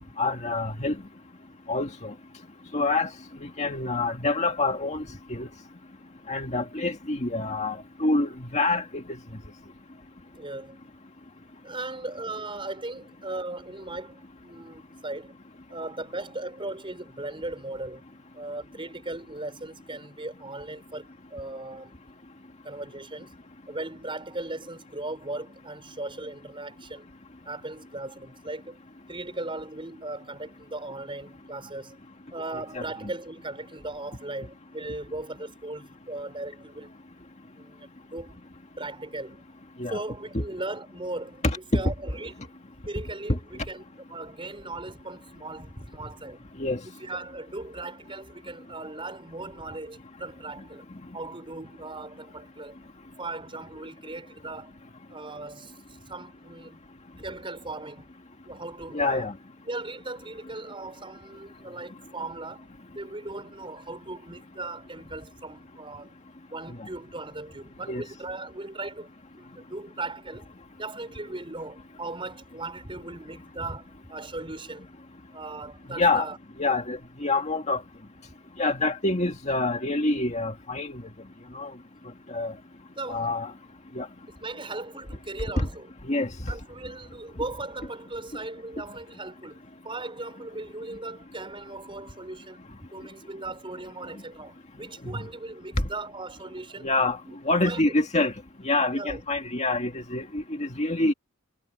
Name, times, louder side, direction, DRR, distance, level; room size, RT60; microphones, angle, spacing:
voice 1, 0.2-1.0 1.7-2.1 2.7-3.1 3.6-5.0 5.3-5.5 6.3-9.0 32.7-32.8 39.8-40.0 40.3-40.4 41.4-41.6 46.6-46.8 58.9-59.3 67.9-68.0 76.0-76.2 76.6-77.8 78.6-81.0 81.5-81.7 82.3-82.5 83.1-83.5 84.0-84.1 85.6-85.7 86.1-86.3 96.8-97.2 97.5-98.3 98.6-101.1, left 2 dB, 30° left, 2.0 m, -26 dB
voice 2, 10.4-10.8 11.6-15.3 15.7-18.0 18.3-21.9 22.6-23.4 23.7-27.0 27.4-28.8 29.1-32.0 32.3-36.9 37.6-38.4 38.8-39.4 39.9-41.4 41.7-43.8 44.1-46.5 47.0-50.8 51.1-52.9 53.2-54.7 55.1-56.8 57.2-58.1 58.4-59.3 59.6-62.7 62.9-66.1 66.5-69.1 69.3-70.5 70.8-74.9 75.3-76.4 82.9-83.3 84.4-85.9 86.5-92.6 92.9-96.9 97.2-97.4 97.6-97.9 98.9-99.2, right 2 dB, 25° right, 5.1 m, -38 dB
head